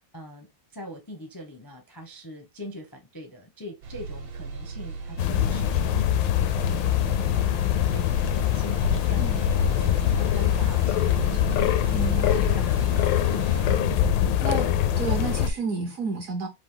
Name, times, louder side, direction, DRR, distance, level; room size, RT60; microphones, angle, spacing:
voice 1, 0.1-7.5 7.9-11.6, equal, 25° left, 0.4 m, -43 dB
sound 1, 3.8-14.7, right 4 dB, 75° right, 1.7 m, -39 dB
sound 2, 5.2-15.5, left 10 dB, 80° left, 1.3 m, -23 dB
voice 2, 11.9-12.5 14.4-16.5, right 4 dB, 60° right, 0.9 m, -31 dB
4.9 x 2.6 x 3.8 m
omnidirectional pair, 2.1 m